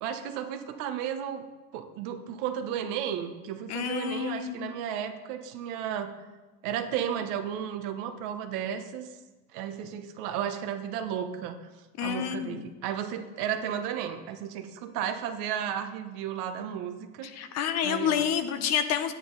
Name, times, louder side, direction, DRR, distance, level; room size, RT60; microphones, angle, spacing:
voice 1, 0.0-1.4 1.7-6.1 6.6-9.1 9.5-11.6 12.0-17.3 17.8-18.2 18.6-18.8, right 9 dB, 50° right, 7 dB, 1.2 m, -33 dB
voice 2, 3.7-4.8 12.0-12.6 17.2-19.1, left 8 dB, 35° left, 10 dB, 0.7 m, -29 dB
11.0 x 9.4 x 4.0 m, 1.2 s
hypercardioid pair, 110°, 46 cm